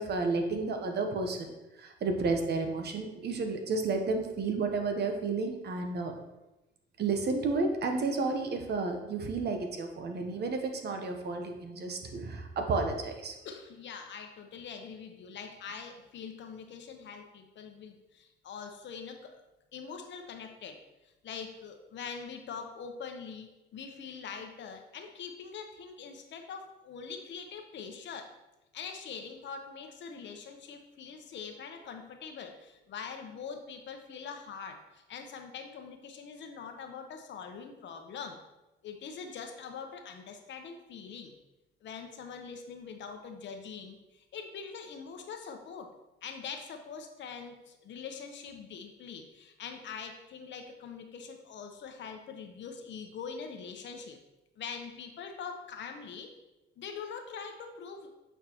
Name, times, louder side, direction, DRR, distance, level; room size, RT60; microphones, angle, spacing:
voice 1, 0.0-1.5 1.8-6.1 7.0-13.3, right 3 dB, 55° right, 5 dB, 1.0 m, -31 dB
voice 2, 13.4-19.4 19.7-28.3 28.7-38.4 38.8-41.3 41.8-45.9 46.2-54.2 54.6-56.3 56.8-58.1, left 6 dB, 65° left, 5 dB, 0.9 m, -43 dB
8.2 x 4.6 x 2.9 m, 1.0 s
cardioid pair, 90°, 20 cm